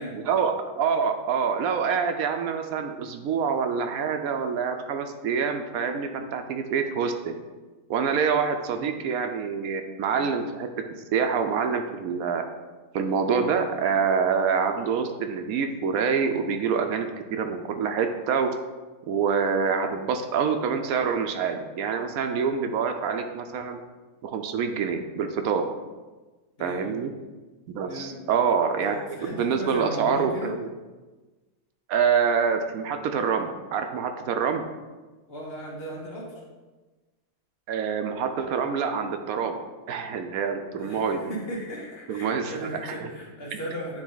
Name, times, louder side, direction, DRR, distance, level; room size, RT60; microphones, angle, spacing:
voice 1, 0.1-7.3 7.9-10.7 11.1-12.4 12.9-18.5 19.1-23.8 24.2-25.7 26.6-27.1 27.7-29.0 29.3-30.7 31.9-34.6 37.7-39.6 39.9-41.3 42.1-42.6 43.5-43.6, right 6 dB, 80° right, 6 dB, 1.1 m, -26 dB
voice 2, 26.6-27.0 27.8-28.2 28.8-30.5 35.3-36.4 40.8-44.0, equal, 45° left, -4 dB, 1.7 m, -36 dB
9.0 x 3.5 x 3.9 m, 1.2 s
omnidirectional pair, 1.5 m